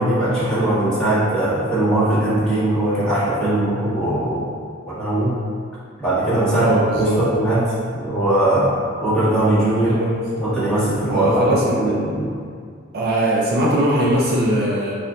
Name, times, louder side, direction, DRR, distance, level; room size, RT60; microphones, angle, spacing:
voice 1, 0.0-4.5 4.8-5.3 6.0-8.7 9.0-10.0 10.4-12.4, right 1 dB, 5° left, -13 dB, 1.5 m, -20 dB
voice 2, 6.6-7.2 9.8-10.4 11.1-11.8 12.9-14.9, right 1 dB, 55° right, -4 dB, 0.5 m, -20 dB
4.4 x 2.5 x 3.5 m, 2.2 s
head